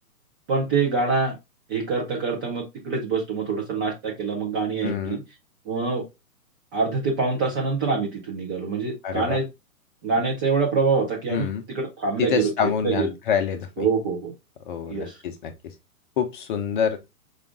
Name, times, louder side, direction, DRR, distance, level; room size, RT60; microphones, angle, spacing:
voice 1, 0.5-1.4 1.7-5.2 5.7-6.0 6.7-9.5 10.0-12.5 12.8-13.1 13.8-14.3 14.9-15.2, right 4 dB, 15° right, 0.5 m, -25 dB
voice 2, 4.8-5.2 9.0-9.4 11.3-11.6 12.2-13.9 14.7-15.5 16.2-17.0, left 7 dB, 35° left, 0.6 m, -26 dB
5.0 x 2.4 x 3.5 m
hypercardioid pair, 140°, 45 cm